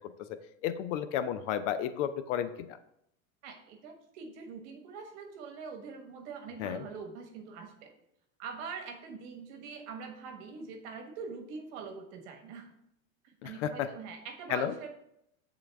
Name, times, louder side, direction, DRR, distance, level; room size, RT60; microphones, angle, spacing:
voice 1, 0.6-2.8 6.6-6.9 13.4-13.9 14.5-14.7, left 9 dB, 60° left, 11 dB, 0.6 m, -32 dB
voice 2, 3.4-7.9 8.4-12.7 13.4-14.9, right 5 dB, 55° right, 4 dB, 1.3 m, -43 dB
8.0 x 3.8 x 3.4 m, 0.77 s
supercardioid pair, 145°, 41 cm